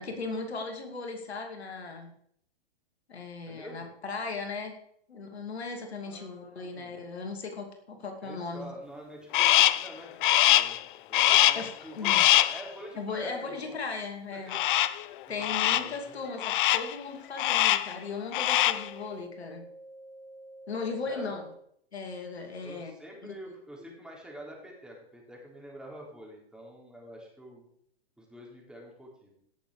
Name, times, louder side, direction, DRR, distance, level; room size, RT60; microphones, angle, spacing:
voice 1, 0.0-2.1 3.1-4.8 5.1-8.7 11.5-12.2 13.0-14.6 15.3-19.6 20.7-21.4 21.9-22.9 23.2-23.3 23.8-23.9, left 4 dB, 80° left, 4 dB, 2.7 m, -37 dB
voice 2, 3.5-3.9 6.0-6.9 8.2-10.8 11.1-13.8 14.3-14.6 15.3-16.4 21.1-21.3 22.6-27.7 28.2-29.3, right 1 dB, ahead, -2 dB, 3.9 m, -46 dB
Crow, 9.3-9.9 10.2-10.8 11.1-11.7 12.0-12.6 14.5-15.0 15.4-15.9 16.4-16.9 17.4-17.9 18.3-18.9, left 14 dB, 50° left, 0.7 m, -23 dB
sound 1, 12.7-12.8 13.7-13.8 14.7-14.8 15.7-15.8 16.7-16.8 17.3-17.4 17.9-18.0 18.4-21.5, right 1 dB, 65° right, 6.4 m, -49 dB
16.5 x 7.0 x 5.0 m, 0.68 s
hypercardioid pair, 115°, 32 cm